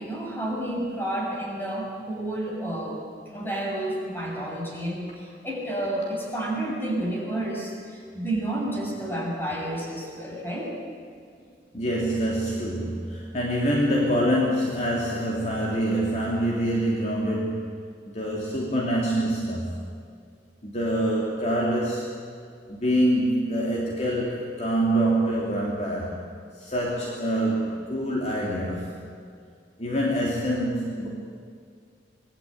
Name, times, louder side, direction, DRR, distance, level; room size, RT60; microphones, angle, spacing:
voice 1, 0.0-3.0 3.3-10.7, right 1 dB, 10° left, -2 dB, 6.8 m, -30 dB
voice 2, 11.7-17.8 18.0-19.7 20.6-22.1 22.7-26.2 26.6-29.1 29.8-31.1, right 1 dB, 40° left, -3 dB, 3.1 m, -25 dB
25.5 x 20.5 x 8.8 m, 2.2 s
head